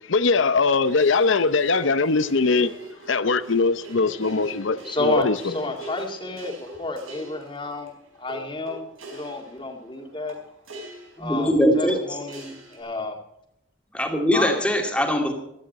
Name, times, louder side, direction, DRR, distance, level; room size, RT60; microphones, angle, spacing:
voice 1, 0.1-2.7 3.1-5.4, left 4 dB, 70° left, 0.7 m, -21 dB
sound 1, 0.8-12.8, equal, 90° right, 4.8 m, -43 dB
voice 2, 4.8-7.9 8.2-10.4 11.2-13.2 14.3-14.5, left 2 dB, 25° left, 2.0 m, -30 dB
voice 3, 11.2-12.2 13.9-15.3, equal, 5° left, 2.3 m, -21 dB
16.0 x 13.0 x 4.2 m
head